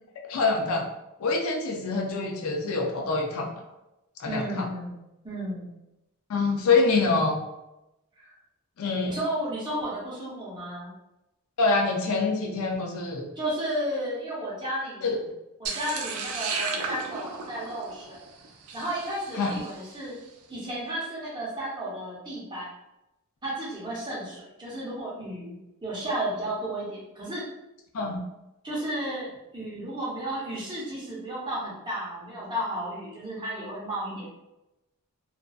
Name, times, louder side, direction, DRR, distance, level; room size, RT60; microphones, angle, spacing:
voice 1, 0.3-0.8 1.2-3.5 4.2-4.7 6.3-7.4 8.8-9.2 11.6-13.3 15.0-15.1 19.4-19.5 27.9-28.2, left 3 dB, 65° left, 1 dB, 0.4 m, -25 dB
voice 2, 4.3-5.0 5.2-5.7 8.2-8.3 9.0-10.9 13.4-15.0 15.6-18.3 18.7-20.1 20.5-22.7 23.4-25.6 25.8-27.4 28.6-29.3 29.5-34.3, right 1 dB, 20° right, -7 dB, 0.8 m, -33 dB
sound 1, 15.6-19.9, right 4 dB, 70° right, 0.4 m, -34 dB
2.5 x 2.3 x 2.3 m, 0.92 s
head